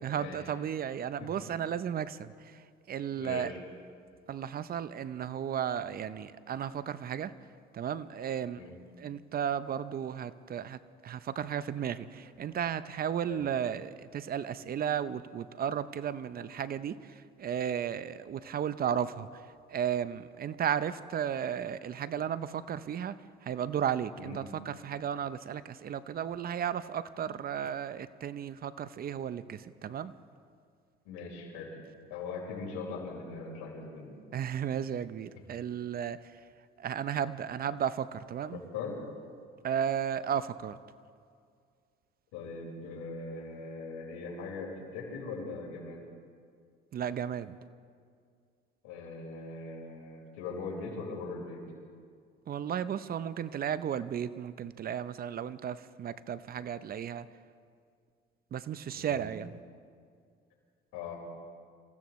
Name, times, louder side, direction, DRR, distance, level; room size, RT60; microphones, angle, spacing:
voice 1, 0.0-3.5 4.3-7.3 7.7-8.6 9.0-19.4 19.7-23.2 23.4-30.1 34.3-36.4 36.8-38.6 39.6-40.8 46.9-47.6 52.5-57.3 58.5-59.6, right 9 dB, 45° right, 14 dB, 0.7 m, -34 dB
voice 2, 3.2-3.6 8.5-8.7 13.3-13.4 24.2-24.3 31.0-31.7 32.1-34.1 38.7-38.9 42.3-46.0 48.8-51.6 58.9-59.3 60.9-61.2, left 4 dB, 85° left, -2 dB, 4.9 m, -40 dB
26.5 x 16.0 x 3.2 m, 2.2 s
supercardioid pair, 85°, 21 cm